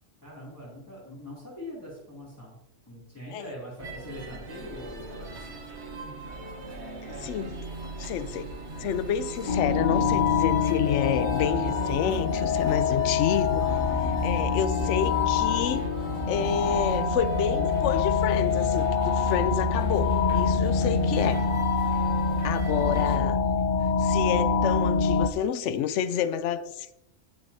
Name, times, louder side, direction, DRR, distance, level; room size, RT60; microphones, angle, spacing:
voice 1, 0.2-2.6 2.9-5.6 23.1-23.2, left 1 dB, 15° left, 2.8 m, -42 dB
sound 1, 3.8-23.2, right 3 dB, 70° right, 1.4 m, -38 dB
voice 2, 7.0-7.6 8.0-8.5 8.8-15.9 16.3-21.5 22.4-23.4 24.0-26.9, left 8 dB, 85° left, 0.9 m, -29 dB
sound 2, 9.5-25.3, left 5 dB, 55° left, 0.8 m, -25 dB
10.5 x 9.7 x 2.7 m
omnidirectional pair, 1.2 m